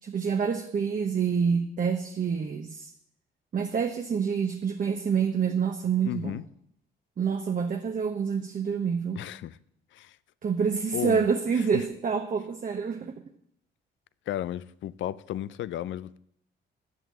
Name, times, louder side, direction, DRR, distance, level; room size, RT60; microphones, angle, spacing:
voice 1, 0.0-2.9 3.5-6.4 7.2-9.2 10.4-13.2, right 6 dB, 45° right, 1.1 m, -27 dB
voice 2, 6.0-6.4 9.2-9.6 9.9-10.2 10.9-11.2 11.5-11.9 14.3-16.2, left 12 dB, 70° left, 0.6 m, -34 dB
11.0 x 11.0 x 7.6 m
cardioid pair, 90°, 20 cm